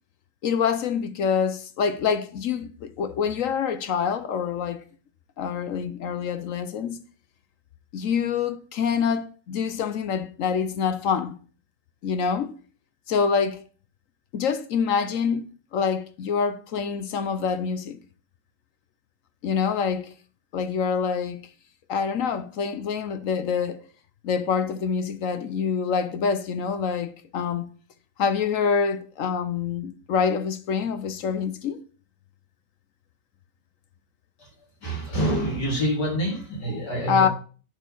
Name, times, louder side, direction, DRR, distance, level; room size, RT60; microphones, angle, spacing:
voice 1, 0.4-4.8 5.4-7.0 7.9-11.4 12.0-12.5 13.1-13.6 14.3-18.0 19.4-20.1 20.5-21.4 21.9-23.8 24.2-27.7 28.2-31.8 37.1-37.3, left 6 dB, 60° left, 0.9 m, -26 dB
voice 2, 34.4-37.3, right 1 dB, 80° left, 3.6 m, -27 dB
9.0 x 4.4 x 6.3 m
omnidirectional pair, 1.8 m